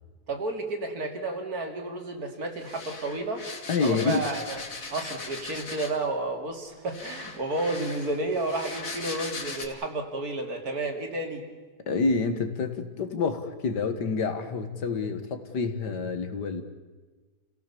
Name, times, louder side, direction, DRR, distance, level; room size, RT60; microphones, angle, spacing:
voice 1, 0.3-3.4 3.8-4.6 4.9-11.5, right 2 dB, 60° right, 4 dB, 3.0 m, -31 dB
sound 1, 2.6-6.1 6.9-9.7, left 3 dB, 50° left, 2.5 m, -39 dB
voice 2, 3.7-4.3 11.9-16.6, left 4 dB, 75° left, 8 dB, 2.3 m, -28 dB
29.0 x 16.5 x 7.1 m, 1.3 s
omnidirectional pair, 1.8 m